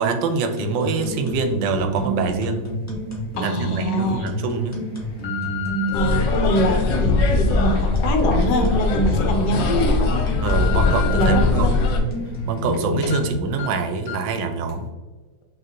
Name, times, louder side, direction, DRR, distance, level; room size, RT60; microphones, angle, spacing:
voice 1, 0.0-2.7 3.4-4.8 9.1-9.4 10.4-11.7 12.5-14.9, right 4 dB, 85° right, 6 dB, 1.3 m, -25 dB
sound 1, 0.6-13.4, right 1 dB, 25° left, 0.3 m, -28 dB
sound 2, 2.9-3.0 3.6-4.0 4.6-6.2 6.9-9.2 9.6-9.7 10.1-11.4 11.9-12.8 13.0-13.2 13.6-13.7 14.1-14.3 14.7-14.8, left 11 dB, 45° left, 1.2 m, -34 dB
voice 2, 3.4-4.3 5.9-10.2 11.1-11.7, equal, 70° left, 4 dB, 1.2 m, -24 dB
sound 3, 5.9-12.0, left 3 dB, 90° left, 1.3 m, -21 dB
5.8 x 2.4 x 2.8 m, 1.2 s
omnidirectional pair, 1.9 m